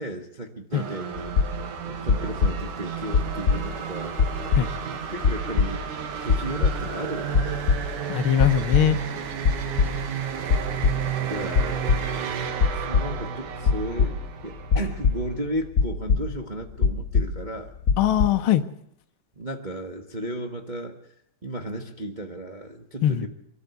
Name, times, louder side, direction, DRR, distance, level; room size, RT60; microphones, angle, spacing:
voice 1, 0.0-7.6 10.4-17.7 19.4-21.0 21.4-23.3, right 1 dB, 50° right, 2 dB, 0.5 m, -35 dB
sound 1, 0.7-15.6, right 8 dB, 75° right, 3.0 m, -33 dB
sound 2, 1.1-1.8 2.1-2.8 3.1-3.9 4.1-4.9 5.2-6.0 6.3-7.0 7.3-8.1 8.4-9.0 9.3-10.2 10.5-11.2 11.5-12.3 12.6-13.2 13.6-15.5 15.8-16.5 16.8-17.6 17.8-18.2, left 5 dB, 30° left, 1.8 m, -23 dB
voice 2, 8.1-9.0 18.0-18.6 23.0-23.3, left 10 dB, 80° left, 7 dB, 1.1 m, -21 dB
24.5 x 13.5 x 8.1 m, 0.75 s
omnidirectional pair, 3.6 m